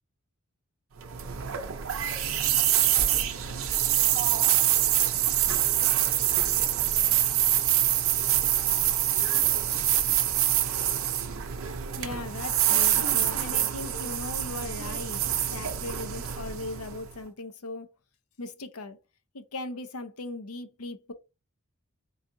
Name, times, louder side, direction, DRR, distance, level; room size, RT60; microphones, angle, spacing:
sound 1, 1.0-17.2, right 11 dB, 65° right, 0.6 m, -25 dB
voice 1, 12.0-15.2 15.5-17.9 18.4-19.0 19.3-21.1, left 2 dB, 80° left, 0.7 m, -38 dB
4.0 x 3.9 x 2.7 m
head